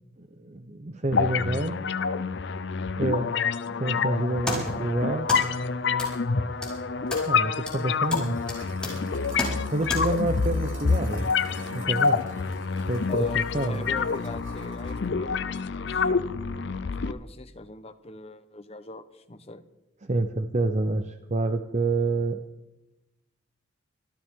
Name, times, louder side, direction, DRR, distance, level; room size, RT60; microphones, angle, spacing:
voice 1, 0.2-1.8 3.0-3.3 3.7-5.3 7.2-8.4 9.7-11.3 11.7-12.2 12.9-13.3 13.5-13.8 20.0-22.4, right 2 dB, 35° right, 8 dB, 0.7 m, -28 dB
sound 1, 1.1-17.1, left 5 dB, 60° left, 0.6 m, -27 dB
sound 2, 4.1-10.0, left 1 dB, 5° left, 4.7 m, -35 dB
sound 3, 7.9-15.1 15.4-15.5, right 2 dB, 80° right, 1.6 m, -47 dB
voice 2, 13.1-16.1 16.9-19.6, left 2 dB, 30° left, 9 dB, 1.0 m, -41 dB
25.0 x 13.5 x 3.7 m, 1.0 s
head